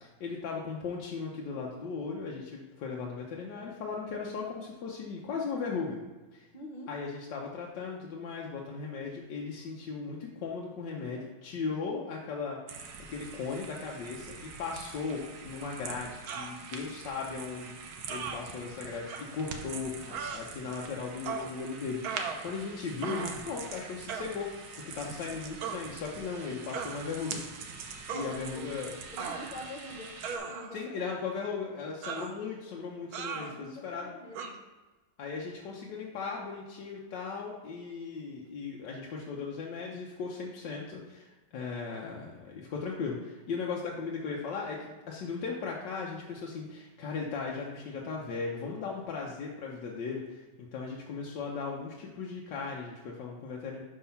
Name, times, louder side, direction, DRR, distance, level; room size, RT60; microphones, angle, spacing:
voice 1, 0.0-6.0 6.3-6.5 6.9-12.6 13.1-27.4 28.1-29.0 30.7-34.1 35.2-53.8, left 5 dB, 85° left, -2 dB, 1.5 m, -37 dB
voice 2, 6.5-6.9 28.1-28.8 29.1-31.2 33.3-34.6, left 1 dB, 40° left, 2 dB, 0.7 m, -45 dB
sound 1, 12.7-30.4, right 5 dB, 85° right, 1.5 m, -44 dB
sound 2, 16.3-16.6 18.1-18.4 19.1-19.2 20.1-20.4 21.3-21.5 22.0-22.7 23.0-23.5 24.1-24.3 25.6-25.8 26.7-27.0 28.1-28.3 29.2-29.7 30.2-30.9 32.0-32.4 33.1-33.5 34.3-34.5, right 6 dB, 65° right, 1.1 m, -37 dB
5.6 x 5.3 x 5.6 m, 1.2 s
omnidirectional pair, 1.9 m